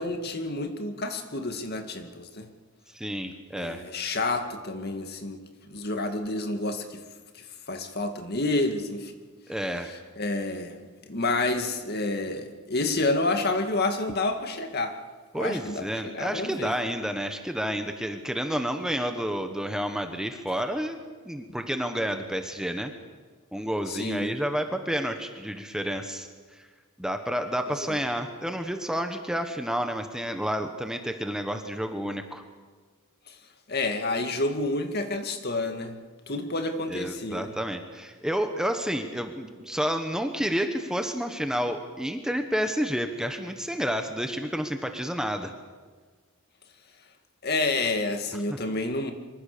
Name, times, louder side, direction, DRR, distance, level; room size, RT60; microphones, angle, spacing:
voice 1, 0.0-2.5 3.5-5.4 5.7-7.0 7.3-9.1 10.2-10.8 11.1-15.0 15.3-16.7 23.9-24.3 27.9-28.0 33.3-33.4 33.7-36.0 36.3-37.5 47.4-49.1, left 2 dB, 45° left, 6 dB, 2.1 m, -29 dB
voice 2, 2.9-3.8 9.5-9.9 15.3-21.0 21.2-22.9 23.5-26.6 27.0-32.4 36.9-45.5 48.5-48.6, equal, 5° right, 6 dB, 1.3 m, -30 dB
25.0 x 24.5 x 6.8 m, 1.5 s
head